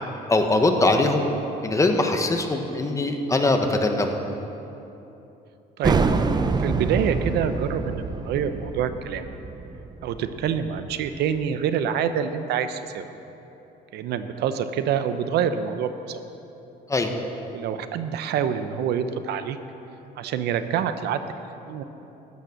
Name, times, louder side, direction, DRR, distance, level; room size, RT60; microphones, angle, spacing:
voice 1, 0.3-1.3 1.6-4.2 16.9-17.1, left 2 dB, 20° left, 4 dB, 1.2 m, -21 dB
sound 1, 5.8-11.2, right 4 dB, 25° right, 0.6 m, -26 dB
voice 2, 6.6-9.3 10.0-13.0 13.9-16.2 17.5-19.6 20.2-21.2 21.7-21.8, right 8 dB, 75° right, 10 dB, 0.8 m, -26 dB
13.5 x 9.6 x 6.5 m, 3.0 s
cardioid pair, 110°, 17 cm